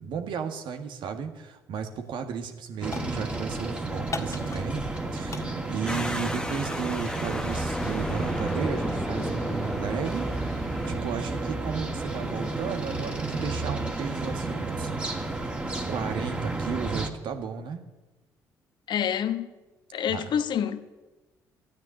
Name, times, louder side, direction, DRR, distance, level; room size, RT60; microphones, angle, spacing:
voice 1, 0.0-10.3 10.9-15.3 15.9-17.9 20.1-20.2, right 6 dB, 60° right, 1.7 m, -34 dB
sound 1, 1.7-2.1 2.3-3.6 4.1-5.0 5.3-7.0, left 4 dB, 35° left, 1.7 m, -40 dB
sound 2, 2.8-17.1, right 2 dB, 15° right, 2.6 m, -32 dB
sound 3, 5.9-10.9, left 1 dB, 10° left, 1.3 m, -34 dB
voice 2, 18.9-19.5 19.9-20.8, left 9 dB, 55° left, 1.2 m, -27 dB
13.5 x 9.4 x 9.9 m
hypercardioid pair, 50°, 9 cm